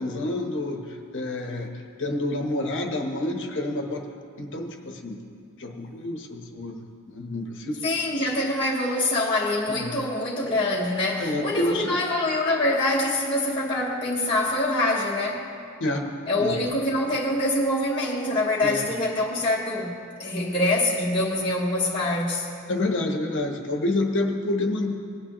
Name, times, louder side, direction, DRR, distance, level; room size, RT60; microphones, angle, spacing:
voice 1, 0.0-4.1 4.4-5.2 5.6-6.8 7.1-7.9 9.7-9.9 11.2-12.0 15.8-16.1 16.4-16.6 18.6-18.8 22.7-24.9, left 2 dB, 60° left, 1.0 m, -28 dB
voice 2, 7.8-15.5 16.3-22.5, left 1 dB, 20° left, 1.1 m, -25 dB
19.5 x 8.7 x 3.0 m
head